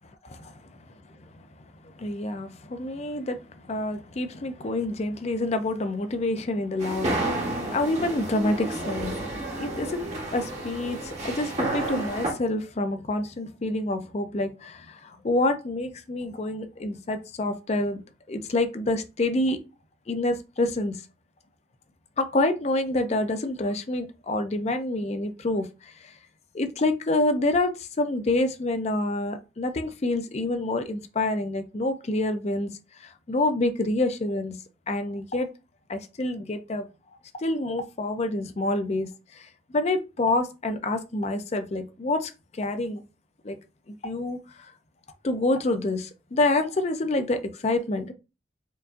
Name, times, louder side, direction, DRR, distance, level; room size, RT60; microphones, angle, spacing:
voice 1, 1.8-9.3 9.5-18.0 18.3-19.6 20.1-21.0 22.2-26.1 26.5-34.6 34.9-35.5 35.9-36.9 37.4-43.0 43.4-43.6 43.9-44.7 45.2-48.1, left 2 dB, 35° left, 0.5 m, -27 dB
sound 1, 6.8-12.3, right 2 dB, 40° right, 1.1 m, -31 dB
4.5 x 2.6 x 2.5 m
head